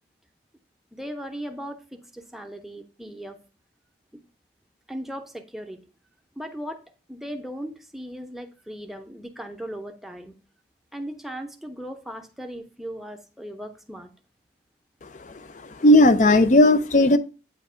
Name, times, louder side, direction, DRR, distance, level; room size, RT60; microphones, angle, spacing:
voice 1, 0.9-3.4 4.1-4.2 4.9-5.8 6.4-6.8 7.1-10.3 10.9-14.1, equal, ahead, 0.7 m, -37 dB
voice 2, 15.6-17.2, left 1 dB, 40° left, 0.5 m, -16 dB
8.6 x 2.9 x 5.5 m
head